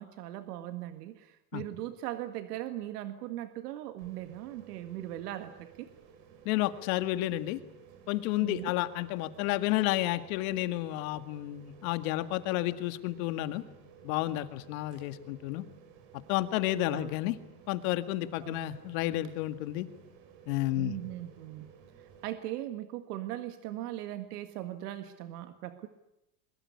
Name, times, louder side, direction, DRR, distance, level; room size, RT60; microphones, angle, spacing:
voice 1, 0.0-5.9 8.4-8.7 16.9-17.1 18.4-18.6 20.8-21.7 22.0-25.9, right 13 dB, 85° right, 9 dB, 1.9 m, -39 dB
sound 1, 4.0-22.3, right 8 dB, 60° right, 5.0 m, -55 dB
voice 2, 6.5-7.6 8.1-13.6 14.0-15.6 16.3-17.4 17.7-19.9 20.5-21.0, left 16 dB, 65° left, 11 dB, 2.0 m, -31 dB
23.5 x 22.0 x 9.6 m, 0.87 s
supercardioid pair, 140°, 45 cm